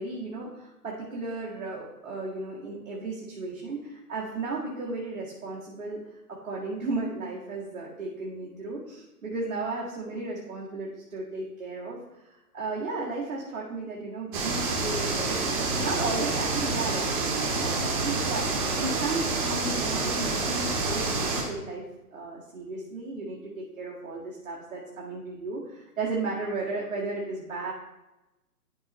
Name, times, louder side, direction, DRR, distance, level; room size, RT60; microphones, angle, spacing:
voice 1, 0.0-21.8 22.1-27.7, right 3 dB, 55° right, -4 dB, 2.0 m, -34 dB
sound 1, 14.3-21.4, right 3 dB, 30° right, 1.6 m, -28 dB
12.0 x 4.8 x 3.1 m, 1.0 s
figure-of-eight pair, 130°, 47 cm